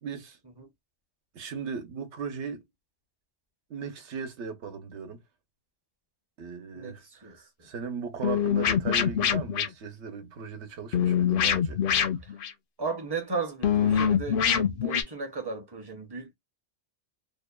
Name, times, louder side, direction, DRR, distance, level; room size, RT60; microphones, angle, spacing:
voice 1, 0.0-0.4 1.3-2.6 3.7-5.2 6.4-11.8, right 6 dB, 75° right, 1.0 m, -37 dB
voice 2, 6.7-7.7 12.2-12.4 12.8-16.3, right 4 dB, 30° right, 0.5 m, -35 dB
sound 1, 8.2-9.7 10.9-12.5 13.6-15.0, left 8 dB, 60° left, 0.6 m, -24 dB
2.8 x 2.1 x 2.2 m
omnidirectional pair, 1.2 m